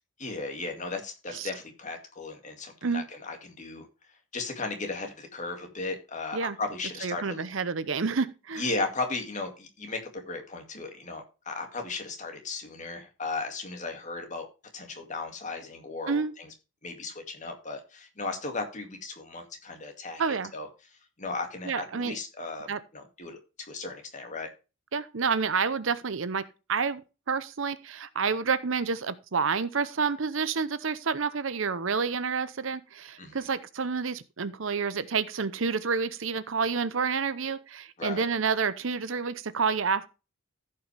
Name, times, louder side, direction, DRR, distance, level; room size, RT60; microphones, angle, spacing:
voice 1, 0.2-3.9 4.3-7.4 8.5-14.5 14.7-16.5 16.8-20.2 20.5-20.7 21.2-23.4 23.7-24.5 33.2-33.4 38.0-38.2, left 3 dB, 35° left, 2.2 m, -36 dB
voice 2, 7.0-8.6 16.1-16.3 20.2-20.5 21.7-22.2 22.7-22.8 24.9-26.4 26.7-27.0 27.3-40.1, right 5 dB, 60° right, 0.7 m, -29 dB
15.0 x 5.7 x 3.3 m
head